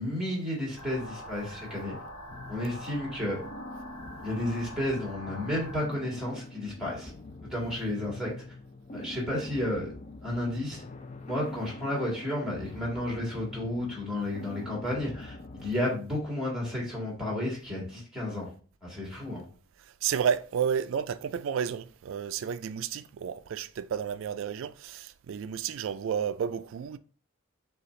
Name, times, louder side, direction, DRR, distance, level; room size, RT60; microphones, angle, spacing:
voice 1, 0.0-2.0 2.5-3.4 4.2-7.1 7.5-8.4 8.9-9.9 10.2-10.8 11.3-18.5 18.8-19.4, left 1 dB, 5° right, 1.8 m, -32 dB
sound 1, 0.8-5.8, equal, 90° left, 1.0 m, -44 dB
sound 2, 2.3-15.7, left 2 dB, 35° left, 0.4 m, -44 dB
voice 2, 19.8-27.0, right 7 dB, 65° right, 0.3 m, -31 dB
6.6 x 2.4 x 3.1 m
head